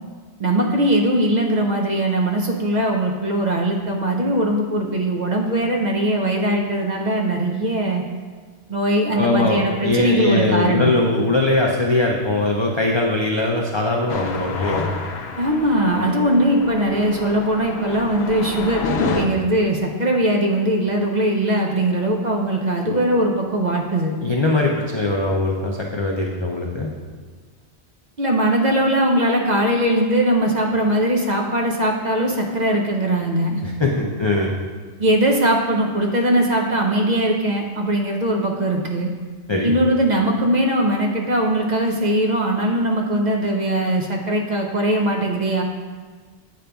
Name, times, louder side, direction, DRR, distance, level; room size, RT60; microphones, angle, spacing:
voice 1, 0.4-8.0 8.7-11.0 15.4-24.2 28.2-33.6 35.0-39.1 39.6-45.6, right 1 dB, 50° right, 0 dB, 0.6 m, -20 dB
voice 2, 9.1-14.9 24.2-26.9 33.6-34.5 39.5-39.8, left 2 dB, 50° left, -1 dB, 0.3 m, -21 dB
sound 1, 14.1-19.3, left 4 dB, 75° left, 0.9 m, -28 dB
8.3 x 5.0 x 2.3 m, 1.5 s
omnidirectional pair, 1.1 m